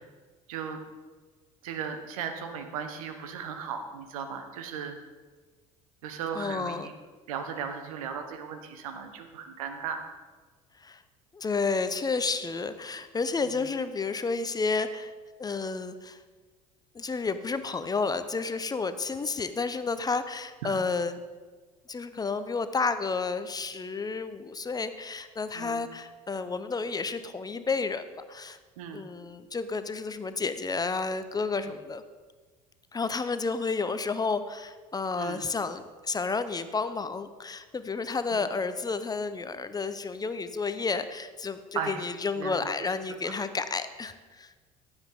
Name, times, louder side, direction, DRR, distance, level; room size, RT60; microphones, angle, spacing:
voice 1, 0.5-0.8 1.6-4.9 6.0-6.9 7.3-10.1 13.5-13.6 20.6-20.7 25.5-25.8 28.8-29.1 31.7-31.8 35.1-35.4 38.3-38.5 41.7-42.1 42.4-42.9 43.2-43.3, right 7 dB, 70° right, 7 dB, 1.3 m, -36 dB
voice 2, 6.3-6.9 10.8-11.0 11.3-16.2 16.9-21.2 21.9-28.6 28.9-32.0 32.9-44.5, left 4 dB, 20° left, 11 dB, 0.8 m, -31 dB
15.5 x 9.9 x 3.7 m, 1.4 s
figure-of-eight pair, 60°, 19 cm